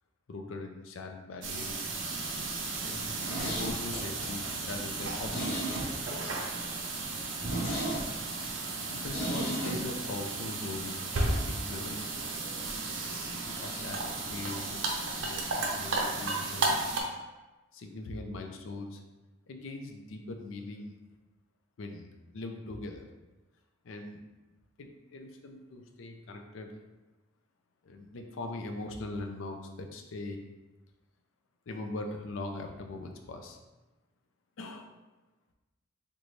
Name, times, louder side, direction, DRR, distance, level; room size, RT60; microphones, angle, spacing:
voice 1, 0.3-1.9 2.7-5.8 8.8-12.2 13.5-14.9 15.2-16.8 17.7-19.0 19.5-20.9 21.8-22.1 22.3-23.0 23.8-24.2 24.8-26.7 27.8-30.4 31.7-33.6 34.6-34.9, left 2 dB, 75° left, 4 dB, 0.4 m, -41 dB
sound 1, 1.4-17.0, right 3 dB, 65° right, 0.5 m, -34 dB
Zipper (clothing), 3.0-6.3 6.6-6.7 7.0-7.1 7.4-9.8 10.1-10.2, right 1 dB, 50° left, 0.8 m, -35 dB
3.8 x 2.2 x 3.1 m, 1.1 s
head